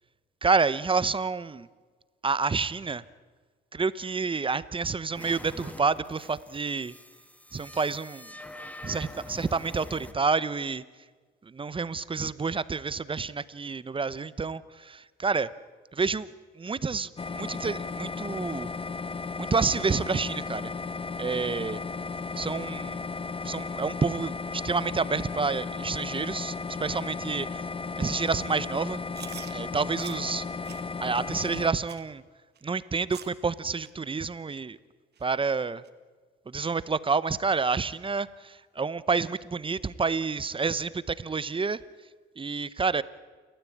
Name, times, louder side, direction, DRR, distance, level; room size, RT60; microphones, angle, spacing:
voice 1, 0.4-1.7 2.2-3.0 3.7-6.9 7.5-8.3 8.8-10.8 11.4-15.5 15.9-16.3 16.6-18.7 19.4-20.7 21.2-21.8 22.3-23.0 23.4-27.6 28.0-29.0 29.5-30.4 31.0-32.2 32.6-34.8 35.2-35.8 36.5-41.8 42.4-43.0, right 4 dB, 25° right, 17 dB, 0.8 m, -29 dB
sound 1, 5.1-10.1, left 1 dB, 5° left, 2.0 m, -45 dB
sound 2, 17.2-31.7, left 4 dB, 25° left, 1.0 m, -35 dB
Chewing mastication, 29.1-29.5 30.0-30.2 30.6-30.8 31.2-31.4 31.9-32.1 32.6-32.7 33.1-33.4 33.8-33.9 34.5-34.6 35.2-35.3 35.8-35.9, right 8 dB, 55° right, 1.9 m, -44 dB
29.5 x 13.5 x 8.6 m, 1.5 s
cardioid pair, 90°, 20 cm